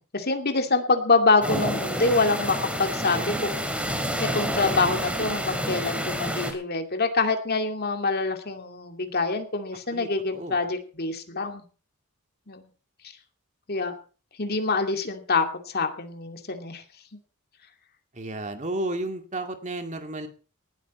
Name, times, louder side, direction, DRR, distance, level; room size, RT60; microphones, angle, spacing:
voice 1, 0.0-3.6 4.2-11.6 12.5-12.7 13.7-13.9 14.4-16.8, left 3 dB, 45° left, 5 dB, 2.4 m, -25 dB
sound 1, 1.4-6.5, equal, 5° right, 2.7 m, -29 dB
voice 2, 9.9-10.6 18.1-20.3, right 1 dB, 35° right, 6 dB, 2.2 m, -32 dB
19.0 x 12.5 x 4.3 m, 0.38 s
head